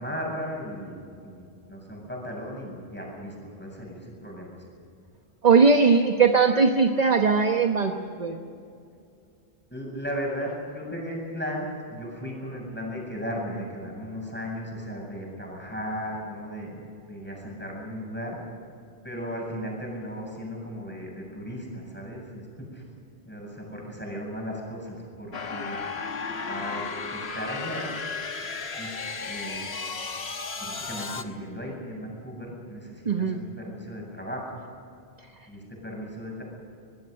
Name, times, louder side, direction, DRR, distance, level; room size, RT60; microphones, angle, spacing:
voice 1, 0.0-4.6 9.7-16.8 17.1-18.4 19.0-22.8 23.2-25.8 26.5-27.9 28.8-29.7 30.6-34.6 35.5-36.4, equal, 10° left, -2 dB, 7.7 m, -36 dB
voice 2, 5.4-7.9 8.2-8.4 33.1-33.4, right 5 dB, 40° right, 5 dB, 1.2 m, -19 dB
sound 1, 25.3-31.2, left 4 dB, 85° left, 1.6 m, -34 dB
24.0 x 21.0 x 6.6 m, 2.5 s
omnidirectional pair, 1.0 m